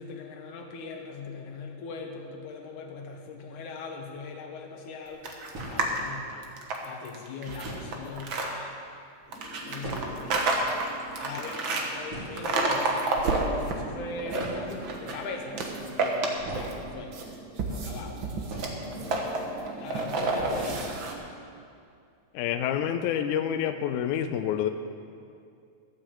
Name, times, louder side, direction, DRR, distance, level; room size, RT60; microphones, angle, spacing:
voice 1, 0.0-6.5 6.8-8.8 9.6-10.9 11.2-17.2 17.7-18.2 18.9-19.4 19.8-20.9, left 4 dB, 65° left, 3 dB, 2.5 m, -41 dB
sound 1, 4.6-4.7 5.5-6.2 7.0-7.1 7.6-8.1 8.4-8.5 8.8-8.9 9.3-10.4 10.7-10.8 11.0-11.3 11.7-11.8 12.1-13.0 13.9-14.0 14.3-14.9 16.4-17.5 18.5-19.3 19.6-19.7 20.5-21.0 21.3-21.4 21.7-21.8 22.3-22.6, right 1 dB, 40° right, 3.9 m, -41 dB
sound 2, 5.2-6.0 6.4-8.5 9.3-11.8 12.4-13.7 14.1-15.2 15.5-16.8 17.1-21.1, right 3 dB, 65° right, 1.2 m, -29 dB
sound 3, 9.3-21.3, right 3 dB, 25° right, 3.9 m, -46 dB
voice 2, 22.3-24.7, left 9 dB, 85° left, 7 dB, 1.7 m, -28 dB
12.5 x 8.5 x 7.7 m, 2.4 s
omnidirectional pair, 4.1 m